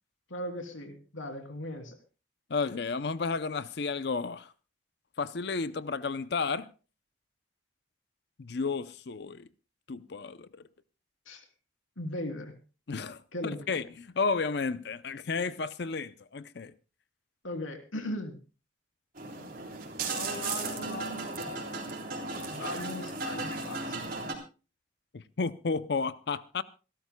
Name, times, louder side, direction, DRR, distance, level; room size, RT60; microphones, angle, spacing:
voice 1, 0.3-2.0 11.3-11.4 12.0-12.5 13.3-13.8 17.4-18.4 20.1-21.8 22.4-24.2, left 1 dB, 85° left, 3.0 m, -38 dB
voice 2, 2.5-4.5 5.2-6.7 8.4-9.5 9.9-10.6 12.9-13.2 13.7-16.7 25.1-26.6, left 4 dB, 55° left, 0.6 m, -32 dB
sound 1, 19.2-24.3, right 3 dB, 45° right, 3.4 m, -36 dB
27.0 x 12.5 x 2.2 m
head